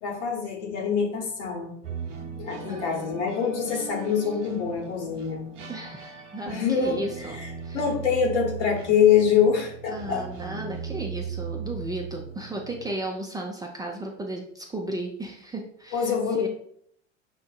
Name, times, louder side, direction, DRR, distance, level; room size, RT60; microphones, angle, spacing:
voice 1, 0.0-1.7 2.4-5.5 6.5-7.0 7.4-7.5 7.7-10.2 15.9-16.5, left 7 dB, 70° left, -1 dB, 1.3 m, -24 dB
sound 1, 1.8-13.0, right 6 dB, 80° right, 0.7 m, -38 dB
voice 2, 2.7-3.2 5.7-7.8 9.9-16.5, right 1 dB, 10° right, 0 dB, 0.5 m, -35 dB
5.7 x 2.6 x 2.4 m, 0.66 s
hypercardioid pair, 80°, 36 cm